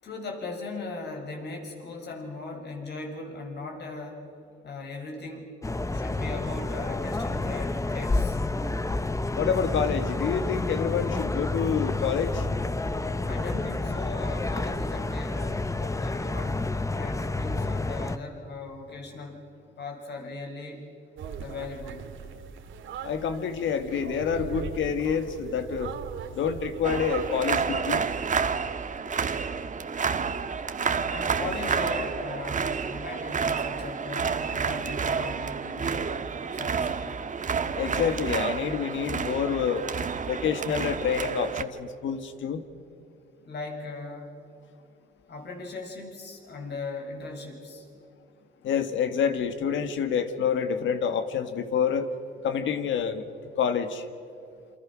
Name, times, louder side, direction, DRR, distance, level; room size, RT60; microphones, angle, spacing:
voice 1, 0.0-4.3 4.6-5.6 5.9-8.4 13.3-19.5 19.8-20.9 21.4-22.1 31.1-36.2 36.5-37.1 43.4-44.5 45.3-47.9, left 3 dB, 60° left, 2 dB, 6.6 m, -38 dB
sound 1, 5.6-18.2, left 2 dB, 15° left, 1.0 m, -29 dB
voice 2, 9.3-12.5 23.0-25.9 26.3-28.0 37.8-39.9 40.3-42.6 48.6-52.1 52.4-53.3 53.6-54.1, left 7 dB, 75° left, 9 dB, 2.0 m, -27 dB
sound 2, 21.2-27.4, right 6 dB, 75° right, 2.3 m, -39 dB
sound 3, 26.8-41.6, right 6 dB, 40° right, 1.5 m, -30 dB
28.5 x 26.5 x 6.3 m, 2.6 s
cardioid pair, 90°, 20 cm